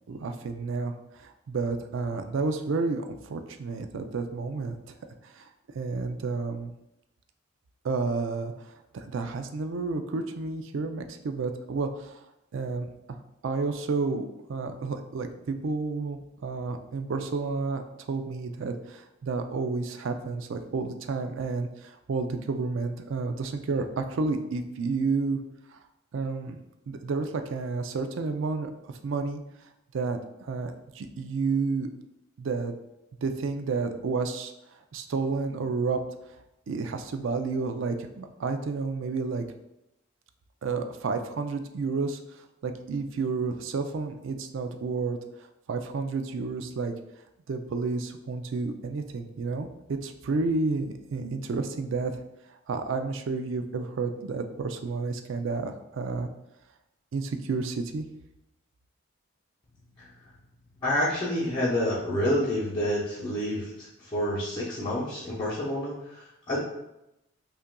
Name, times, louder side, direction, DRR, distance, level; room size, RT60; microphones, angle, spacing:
voice 1, 0.1-4.8 5.2-5.5 5.7-6.7 7.8-12.3 12.5-13.2 13.4-17.8 18.1-25.4 25.7-25.8 26.1-26.6 26.9-29.4 29.9-31.9 32.4-32.8 33.2-34.5 34.9-36.0 36.7-39.5 40.6-46.9 47.5-49.7 50.0-52.1 52.5-56.3 57.1-58.0, right 4 dB, 65° right, 7 dB, 0.4 m, -31 dB
voice 2, 60.8-66.6, left 1 dB, 20° left, -11 dB, 0.8 m, -28 dB
5.4 x 2.5 x 2.2 m, 0.88 s
head